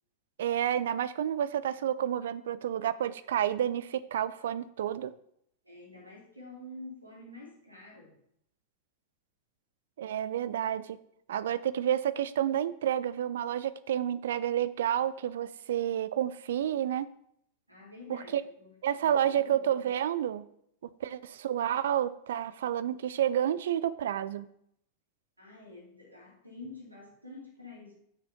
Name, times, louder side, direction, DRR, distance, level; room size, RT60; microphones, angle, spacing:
voice 1, 0.4-5.1 10.0-11.0 11.3-17.1 18.1-18.4 18.8-20.4 21.0-24.5, right 10 dB, 60° right, 16 dB, 0.4 m, -30 dB
voice 2, 5.6-8.2 17.7-18.7 19.0-19.7 25.4-28.0, left 2 dB, 85° right, -2 dB, 2.7 m, -48 dB
6.8 x 5.9 x 5.7 m, 0.71 s
figure-of-eight pair, 90°, 0 cm